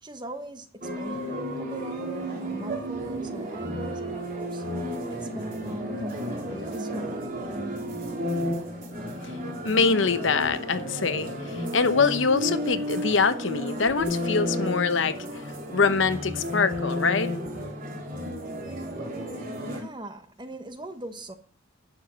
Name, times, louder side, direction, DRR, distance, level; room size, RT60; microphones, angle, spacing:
voice 1, 0.0-4.6 5.1-7.5 19.4-21.3, right 1 dB, 20° right, 1.2 m, -40 dB
sound 1, 0.8-19.8, equal, 45° right, 3.3 m, -32 dB
voice 2, 9.6-11.3 11.7-15.2 15.7-17.3, left 5 dB, 65° left, 0.9 m, -24 dB
11.5 x 7.2 x 6.3 m
head